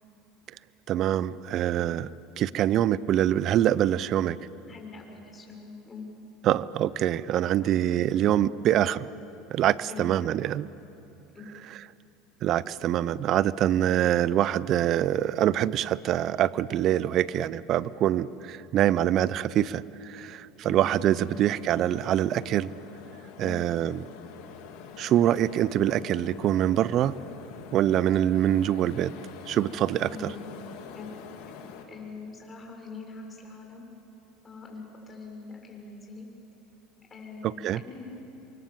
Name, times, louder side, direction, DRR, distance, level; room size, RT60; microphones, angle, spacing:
voice 1, 0.9-2.1 2.4-4.4 6.4-9.1 9.5-10.7 12.4-22.7 23.4-24.0 25.0-27.1 27.7-29.1 29.5-30.1 37.4-37.8, right 11 dB, 50° right, 19 dB, 0.7 m, -25 dB
voice 2, 4.7-6.0 7.6-7.8 9.9-10.4 11.3-11.5 20.6-20.8 21.1-21.3 23.4-23.6 30.1-30.4 30.9-31.1 31.9-33.8 34.4-36.3 37.1-38.0, left 4 dB, 25° left, 1 dB, 6.7 m, -43 dB
sound 1, 20.7-31.8, left 6 dB, 70° left, 3.0 m, -45 dB
28.0 x 24.0 x 7.5 m, 2.9 s
supercardioid pair, 95°, 0 cm